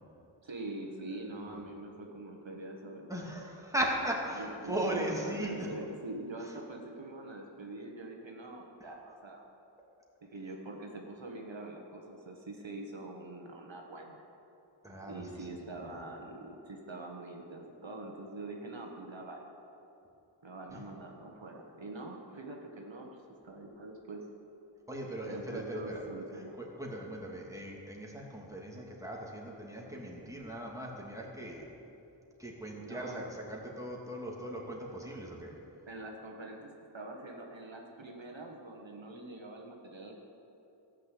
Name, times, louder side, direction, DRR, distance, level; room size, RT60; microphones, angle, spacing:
voice 1, 0.4-3.1 4.3-9.5 10.2-14.2 15.1-19.4 20.4-23.1 23.4-24.2 25.3-26.6 32.8-33.3 35.9-40.2, right 2 dB, 70° right, 1 dB, 1.4 m, -44 dB
voice 2, 1.3-1.6 3.1-5.7 6.4-6.6 14.8-15.2 15.5-15.9 20.7-20.8 24.9-26.0 26.6-31.7 32.4-35.5, right 1 dB, 5° right, -2 dB, 2.5 m, -38 dB
14.5 x 6.6 x 8.3 m, 2.9 s
wide cardioid pair, 45°, 47 cm